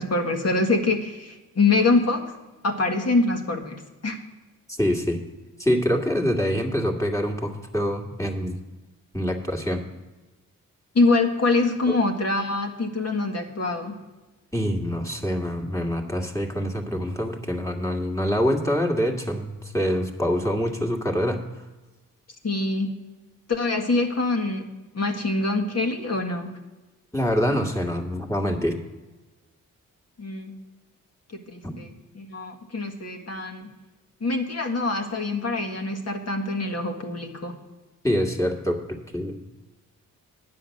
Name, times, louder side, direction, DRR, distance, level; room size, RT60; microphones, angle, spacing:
voice 1, 0.0-2.2 2.6-4.2 11.0-14.0 22.4-22.9 23.5-24.7 24.9-26.5 30.2-30.5 31.3-33.7 34.2-37.6, left 3 dB, 45° left, 3 dB, 1.7 m, -25 dB
voice 2, 4.8-5.2 5.6-8.6 9.1-9.8 11.9-12.0 14.5-21.4 27.1-28.8 31.6-31.7 38.0-39.4, equal, 10° left, 1 dB, 1.9 m, -25 dB
9.8 x 7.6 x 6.5 m, 1.2 s
supercardioid pair, 50°, 35 cm